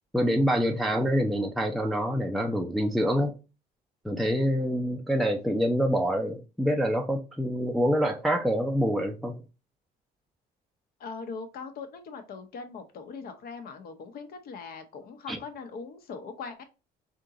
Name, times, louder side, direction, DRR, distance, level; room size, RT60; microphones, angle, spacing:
voice 1, 0.1-3.4 4.0-9.4 15.3-15.4, equal, ahead, 0.5 m, -26 dB
voice 2, 11.0-16.6, left 5 dB, 60° left, 0.9 m, -40 dB
3.6 x 2.9 x 3.7 m
cardioid pair, 110°, 17 cm